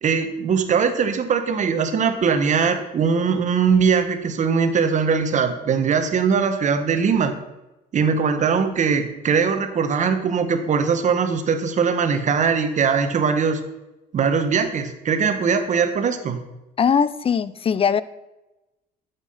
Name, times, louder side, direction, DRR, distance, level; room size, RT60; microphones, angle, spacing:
voice 1, 0.0-7.3 7.9-13.6 14.1-16.4, right 6 dB, 45° right, 8 dB, 1.5 m, -21 dB
voice 2, 16.8-18.0, left 7 dB, 35° left, 17 dB, 0.6 m, -20 dB
12.5 x 7.4 x 5.8 m, 0.99 s
cardioid pair, 110°, 17 cm